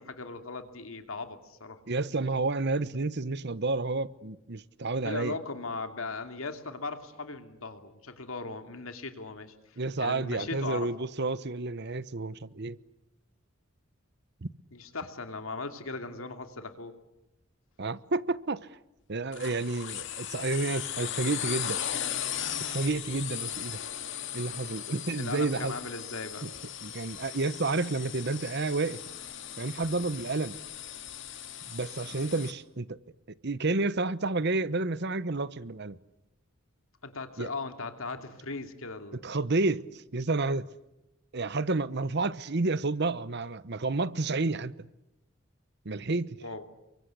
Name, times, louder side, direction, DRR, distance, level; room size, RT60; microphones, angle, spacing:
voice 1, 0.0-1.8 5.0-10.9 14.7-17.0 25.2-26.5 37.0-39.2 46.4-46.6, left 3 dB, 80° left, 2.8 m, -38 dB
voice 2, 1.9-5.4 9.8-12.8 14.4-14.5 17.8-18.7 19.1-21.8 22.6-23.8 24.3-25.7 26.4-26.5 26.8-29.0 29.6-30.6 31.7-33.0 33.4-36.0 37.4-37.5 39.2-40.7 41.3-44.7 45.8-46.4, right 3 dB, 55° right, 1.0 m, -30 dB
sound 1, 19.3-32.5, left 10 dB, 60° left, 2.2 m, -37 dB
29.5 x 23.5 x 8.4 m
head